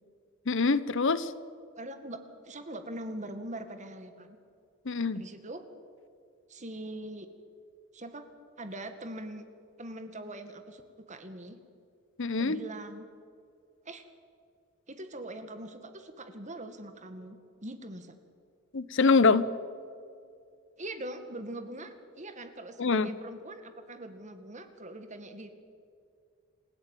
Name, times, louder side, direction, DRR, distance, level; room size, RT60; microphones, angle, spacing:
voice 1, 0.5-1.3 4.9-5.2 12.2-12.6 18.7-19.5 22.8-23.1, left 4 dB, 60° left, 16 dB, 0.9 m, -24 dB
voice 2, 1.8-4.4 5.1-5.6 6.5-7.3 7.9-8.2 8.6-9.5 9.8-10.8 11.1-11.6 12.4-13.1 13.9-14.1 14.9-18.1 20.8-25.5, right 1 dB, 35° right, 8 dB, 2.0 m, -42 dB
28.0 x 15.5 x 9.2 m, 2.3 s
head